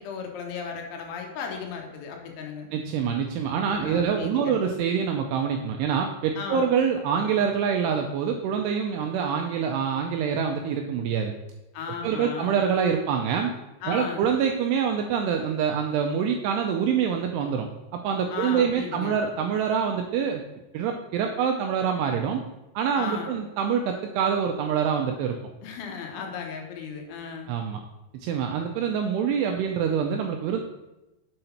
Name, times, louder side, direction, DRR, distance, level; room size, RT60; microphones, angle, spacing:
voice 1, 0.0-2.7 3.7-4.6 6.4-6.7 11.7-12.6 13.8-14.2 18.3-19.2 23.0-23.3 25.6-27.5, left 6 dB, 85° left, 3 dB, 3.5 m, -35 dB
voice 2, 2.7-11.3 12.0-13.6 13.9-20.4 20.7-22.4 22.8-25.4 27.5-27.8 28.2-30.6, right 7 dB, 85° right, 3 dB, 2.4 m, -25 dB
7.8 x 3.9 x 5.7 m, 0.99 s
omnidirectional pair, 5.3 m